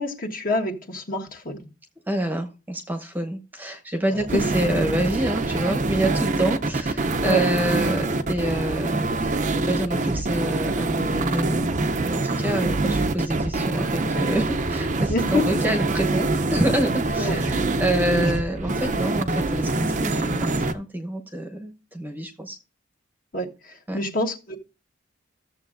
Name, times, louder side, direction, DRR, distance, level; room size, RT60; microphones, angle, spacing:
voice 1, 0.0-1.7 7.2-7.4 15.1-15.5 17.2-17.4 18.1-18.3 23.3-24.6, left 1 dB, 40° left, 1.4 m, -27 dB
voice 2, 2.1-11.6 12.0-22.6 23.9-24.0, right 1 dB, 10° right, 0.9 m, -27 dB
sound 1, 4.3-20.7, right 2 dB, 35° right, 0.5 m, -25 dB
13.5 x 7.3 x 2.5 m
head